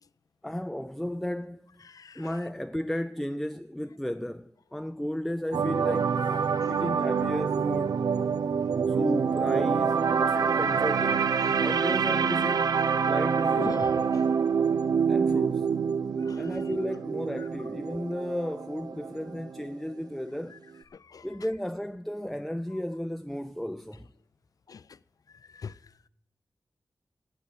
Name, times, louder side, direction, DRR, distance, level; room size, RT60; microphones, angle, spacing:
voice 1, 0.4-1.7 2.2-6.2 6.7-8.0 8.3-8.4 8.9-12.7 13.0-13.8 15.1-15.7 16.4-20.6 21.2-24.1, equal, 5° left, 0.4 m, -34 dB
voice 2, 1.8-2.4 6.3-6.9 13.6-14.3 16.2-16.6 20.9-21.3 24.7-25.0 25.5-25.8, left 6 dB, 65° left, 0.4 m, -41 dB
sound 1, 5.5-19.7 20.0-20.2, right 6 dB, 80° right, 0.5 m, -26 dB
11.0 x 8.2 x 8.5 m
cardioid pair, 60°, 7 cm